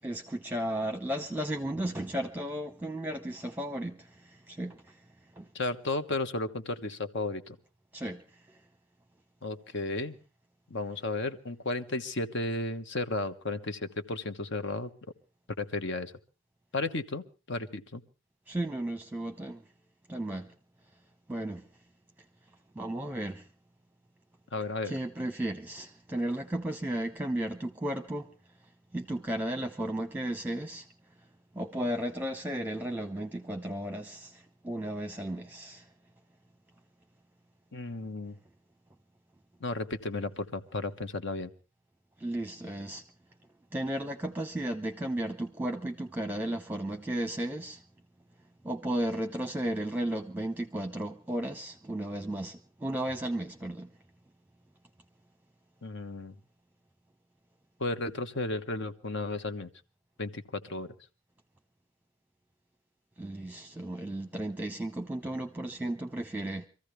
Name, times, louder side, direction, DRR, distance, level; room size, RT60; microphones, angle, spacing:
voice 1, 0.0-5.0 5.3-5.5 7.9-8.6 18.5-19.6 20.1-20.5 21.3-21.7 22.7-23.5 24.8-28.3 28.9-30.9 31.5-35.9 42.2-43.0 43.7-47.8 48.6-53.9 63.2-66.7, right 1 dB, 10° right, 0.9 m, -34 dB
voice 2, 5.5-7.6 9.4-10.2 10.7-14.9 15.6-16.1 16.7-18.0 24.5-25.0 37.7-38.4 39.6-41.5 55.8-56.4 57.8-59.7 60.2-60.9, left 2 dB, 60° left, 1.3 m, -34 dB
25.0 x 14.5 x 3.3 m
head